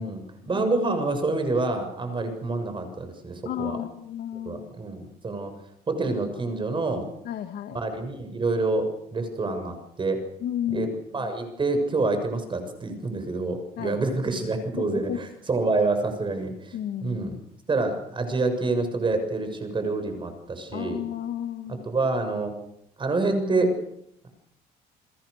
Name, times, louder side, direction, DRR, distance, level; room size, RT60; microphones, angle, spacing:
voice 1, 0.0-3.8 4.4-5.5 5.9-7.1 7.7-10.2 10.7-16.8 17.0-17.3 17.7-21.0 21.8-22.5 23.0-23.7, right 3 dB, 30° right, 8 dB, 6.9 m, -27 dB
voice 2, 3.4-4.7 7.2-7.8 10.4-11.3 13.8-14.0 14.8-15.2 16.7-17.4 20.7-21.9, left 10 dB, 70° left, 7 dB, 2.1 m, -33 dB
30.0 x 21.5 x 6.8 m, 0.75 s
cardioid pair, 110°, 17 cm